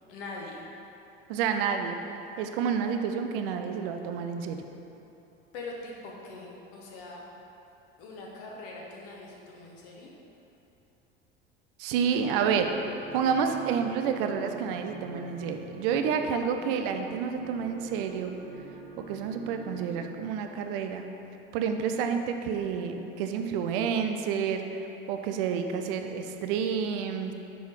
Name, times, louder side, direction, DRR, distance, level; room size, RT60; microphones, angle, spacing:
voice 1, 0.1-0.6 5.5-7.2 8.0-10.1, left 2 dB, 70° left, -2 dB, 1.3 m, -42 dB
voice 2, 1.3-2.0 2.4-4.6 11.8-18.3 19.0-21.0 21.5-27.3, right 6 dB, 70° right, 6 dB, 0.6 m, -29 dB
sound 1, 12.3-20.1, right 2 dB, 35° right, 1.4 m, -45 dB
5.4 x 4.5 x 4.8 m, 2.9 s
hypercardioid pair, 75°, 29 cm